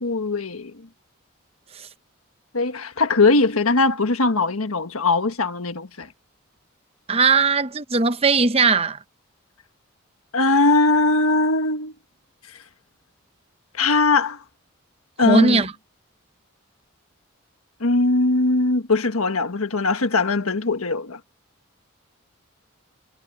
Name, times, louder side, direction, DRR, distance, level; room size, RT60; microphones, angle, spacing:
voice 1, 0.0-0.7 2.5-6.1 10.3-11.9 13.8-14.4 15.2-15.6 17.8-21.2, left 3 dB, 85° left, 1.5 m, -20 dB
voice 2, 7.1-9.0 15.2-15.7, right 4 dB, 30° right, 0.8 m, -19 dB
head